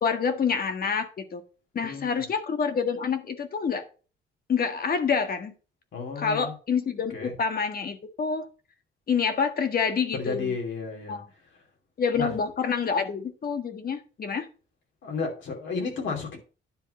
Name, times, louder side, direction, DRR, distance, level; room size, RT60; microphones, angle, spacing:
voice 1, 0.0-1.4 1.7-3.9 4.5-5.5 6.2-8.5 9.1-10.5 11.1-11.3 12.0-14.5, left 6 dB, 50° left, 1.6 m, -27 dB
voice 2, 1.8-2.2 5.9-6.5 7.1-7.3 10.2-11.2 11.5-11.6 12.2-12.3 15.0-16.4, left 4 dB, 70° left, 2.9 m, -32 dB
10.0 x 3.7 x 6.9 m
cardioid pair, 90°, 20 cm